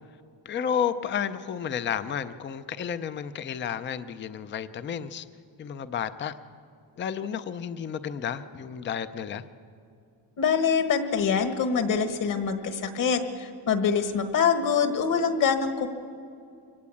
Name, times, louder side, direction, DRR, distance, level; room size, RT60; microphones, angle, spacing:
voice 1, 0.4-5.3 5.6-6.3 7.0-9.4, left 8 dB, 25° left, 12 dB, 0.5 m, -31 dB
voice 2, 10.4-15.9, left 6 dB, 45° left, 8 dB, 1.7 m, -25 dB
25.0 x 17.5 x 8.5 m, 2.5 s
cardioid pair, 180°, 43 cm